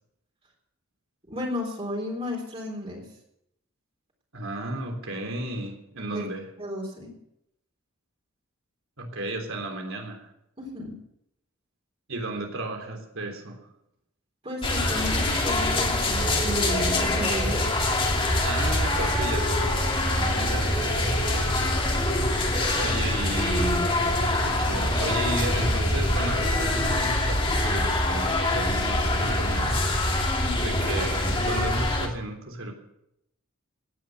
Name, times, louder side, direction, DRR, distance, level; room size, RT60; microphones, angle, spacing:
voice 1, 1.3-3.1 6.1-6.2 6.6-7.1 10.6-10.9 14.4-17.7 30.4-30.8, left 1 dB, 30° right, -1 dB, 3.8 m, -33 dB
voice 2, 4.3-6.5 9.0-10.3 12.1-13.6 18.4-22.0 22.8-29.8 30.5-32.7, right 2 dB, 70° right, 3 dB, 3.6 m, -34 dB
sound 1, 14.6-32.1, left 1 dB, 25° left, 2.6 m, -24 dB
17.0 x 10.0 x 7.0 m, 0.80 s
head